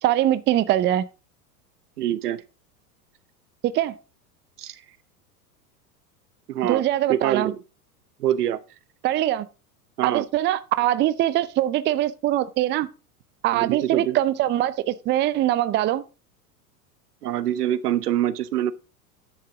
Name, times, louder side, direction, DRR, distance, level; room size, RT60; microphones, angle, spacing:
voice 1, 0.0-1.1 3.7-4.0 6.6-7.5 9.0-9.5 10.0-12.9 13.4-16.0, right 13 dB, 25° right, 0.5 m, -22 dB
voice 2, 2.0-2.4 4.6-4.8 6.5-6.8 7.1-7.6 8.2-8.6 10.0-10.2 13.5-14.2 17.2-18.7, right 11 dB, 75° right, 0.9 m, -24 dB
10.5 x 6.6 x 3.8 m
hypercardioid pair, 90°, 47 cm